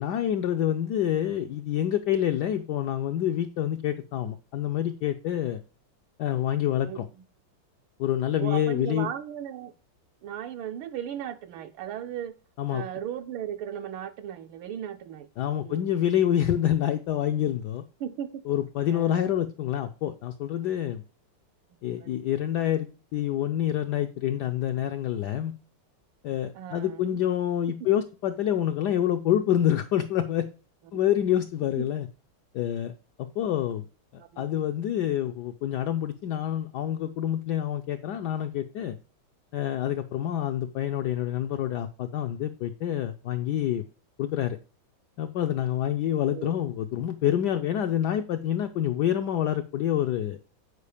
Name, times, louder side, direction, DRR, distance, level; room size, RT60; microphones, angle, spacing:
voice 1, 0.0-5.6 6.2-7.1 8.0-9.1 12.6-12.8 15.4-17.8 18.5-21.0 21.8-22.9 23.1-25.5 26.2-30.5 30.9-32.1 32.5-32.9 33.2-33.8 34.1-39.0 39.5-43.8 44.2-44.6 45.2-50.4, left 11 dB, 80° left, 0.9 m, -27 dB
voice 2, 8.4-9.7 10.2-12.3 12.7-15.3 15.6-15.8 18.0-18.4 18.9-19.3 22.0-22.2 26.5-27.2 31.8-31.9 34.2-34.6 46.3-46.6, right 10 dB, 80° right, 1.4 m, -36 dB
8.2 x 4.9 x 4.9 m
omnidirectional pair, 2.3 m